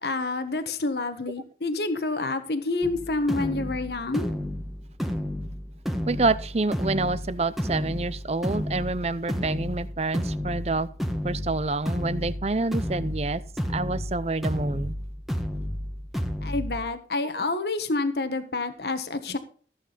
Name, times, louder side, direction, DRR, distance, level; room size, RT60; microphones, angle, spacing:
voice 1, 0.0-4.3 16.4-19.4, left 3 dB, 65° left, 9 dB, 1.3 m, -28 dB
sound 1, 2.8-16.8, equal, ahead, 1.3 m, -31 dB
voice 2, 6.1-10.9 11.2-13.4 13.7-14.9 17.4-17.5, right 3 dB, 35° right, 16 dB, 0.6 m, -27 dB
15.0 x 8.5 x 4.1 m, 0.42 s
head